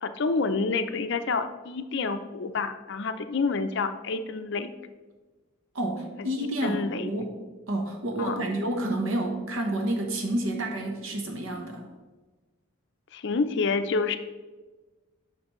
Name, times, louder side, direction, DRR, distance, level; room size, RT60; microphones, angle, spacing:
voice 1, 0.0-4.7 6.2-7.1 8.2-8.4 13.1-14.2, left 4 dB, 55° left, 9 dB, 0.5 m, -28 dB
voice 2, 5.7-7.3 7.7-11.8, right 1 dB, 65° right, 3 dB, 0.9 m, -29 dB
9.8 x 5.8 x 3.1 m, 1.3 s
head